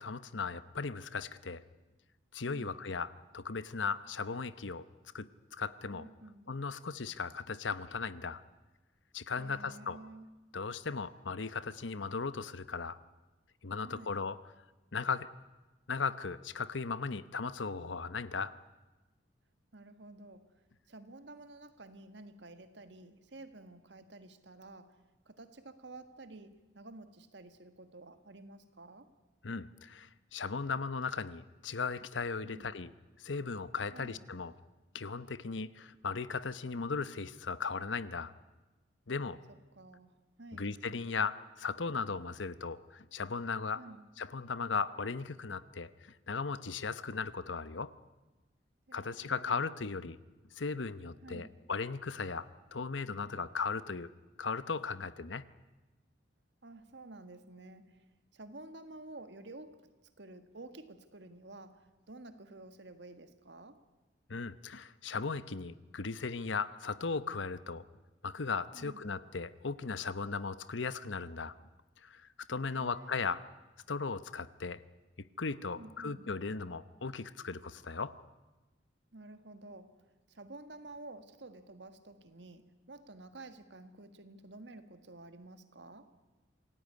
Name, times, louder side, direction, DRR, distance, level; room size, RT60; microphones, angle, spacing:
voice 1, 0.0-1.6 2.3-4.9 5.1-6.1 6.5-8.4 9.1-10.0 10.5-13.0 13.6-14.4 14.9-15.3 15.9-18.5 29.4-32.9 33.2-34.5 34.9-38.3 39.1-39.4 40.5-43.8 44.2-47.9 48.9-50.2 50.5-54.1 54.4-55.5 64.3-67.8 68.2-71.5 72.0-73.4 73.9-74.8 75.4-78.2, left 4 dB, 80° left, 0.9 m, -37 dB
voice 2, 5.9-6.5 9.4-10.4 13.8-14.2 19.7-29.1 32.4-32.8 33.9-34.2 39.2-40.7 43.8-44.1 48.9-49.6 51.2-51.5 56.6-58.1 58.3-63.9 68.7-69.0 72.7-73.4 75.7-76.3 79.1-86.1, right 2 dB, 65° right, 1.7 m, -51 dB
26.5 x 17.0 x 9.6 m
head